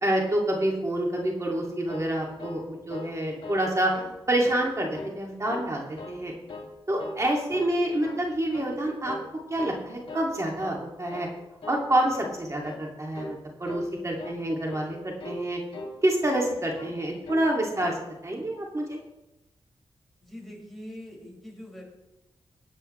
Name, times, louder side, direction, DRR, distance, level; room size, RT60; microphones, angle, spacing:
voice 1, 0.0-3.9 4.3-6.3 6.9-9.2 9.5-11.3 11.7-15.6 16.0-19.0, right 1 dB, 30° right, -1 dB, 2.6 m, -27 dB
sound 1, 1.6-3.2 3.4-3.7 3.9-4.6 4.9-5.7 6.0-6.7 7.0-7.2 7.5-8.3 8.5-8.8 9.0-9.3 9.6-10.3 10.6-10.8 11.1-11.3 11.6-11.9 12.1-12.4 12.6-12.9 13.1-13.4 13.6-13.9 14.2-14.4 14.7-14.9 15.2-15.4 15.7-16.5 16.7-17.0 17.2-17.5 17.8-18.0, left 2 dB, 65° left, 2.4 m, -40 dB
voice 2, 20.2-21.8, left 1 dB, ahead, -3 dB, 5.9 m, -43 dB
23.0 x 9.0 x 3.3 m, 0.99 s
cardioid pair, 75°, 10 cm